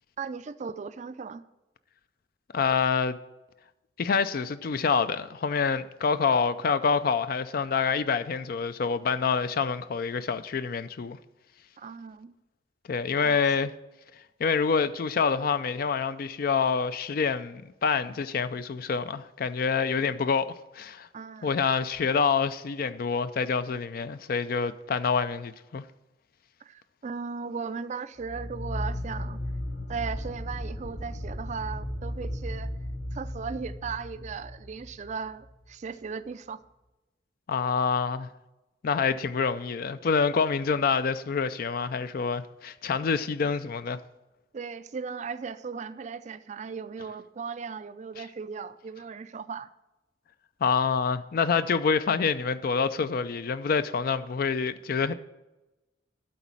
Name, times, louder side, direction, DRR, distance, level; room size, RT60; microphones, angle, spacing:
voice 1, 0.2-1.4 11.8-12.3 13.2-13.4 21.1-21.6 26.6-29.4 29.9-32.7 33.1-36.6 44.5-49.7, right 5 dB, 40° right, 0.4 m, -37 dB
voice 2, 2.5-3.2 4.0-11.2 12.9-13.7 14.4-20.5 20.7-21.1 21.4-25.8 37.5-38.3 38.8-44.0 48.2-48.3 50.6-55.1, left 5 dB, 50° left, 0.4 m, -27 dB
sound 1, 28.2-35.5, left 1 dB, 35° left, 0.9 m, -35 dB
12.0 x 4.1 x 7.4 m
head